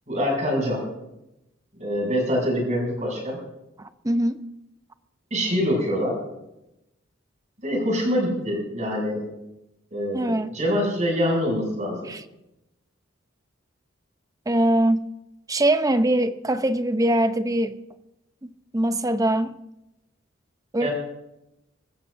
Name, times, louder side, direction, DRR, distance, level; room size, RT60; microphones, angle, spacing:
voice 1, 0.1-0.9 1.8-3.4 5.3-6.2 7.6-9.2 9.9-12.1 20.8-20.9, equal, 35° right, 6.8 m, -25 dB
voice 2, 3.8-4.4 10.1-10.5 12.1-12.2 14.5-15.1 15.5-17.8 18.4-19.6 20.7-20.9, right 1 dB, 15° right, 0.7 m, -22 dB
25.5 x 15.0 x 2.6 m
head